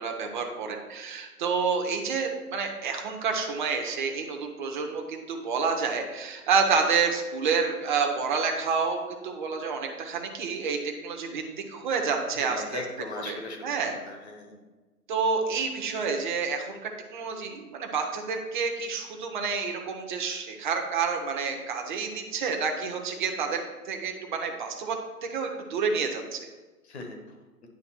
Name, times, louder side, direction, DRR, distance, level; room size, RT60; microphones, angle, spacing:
voice 1, 0.0-11.4 11.7-12.8 13.3-14.0 15.1-16.8 17.1-26.5, right 5 dB, 30° right, 3 dB, 0.9 m, -29 dB
voice 2, 12.3-13.6 14.1-14.6 26.8-27.4, left 3 dB, 45° left, 3 dB, 1.3 m, -39 dB
9.6 x 3.5 x 4.4 m, 1.2 s
figure-of-eight pair, 130°, 46 cm